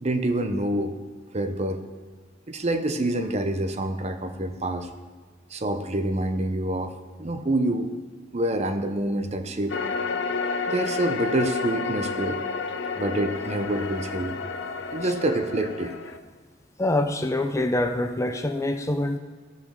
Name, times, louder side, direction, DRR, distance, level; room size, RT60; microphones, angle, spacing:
voice 1, 0.0-1.0 1.3-1.8 2.5-4.9 5.5-6.9 7.2-7.9 8.3-10.0 10.7-14.4 14.9-15.9, right 1 dB, 35° right, 8 dB, 0.7 m, -27 dB
sound 1, 9.7-16.2, left 4 dB, 70° left, 0.7 m, -31 dB
voice 2, 16.8-19.2, left 1 dB, 15° left, 7 dB, 0.5 m, -25 dB
14.0 x 6.1 x 6.6 m, 1.5 s
head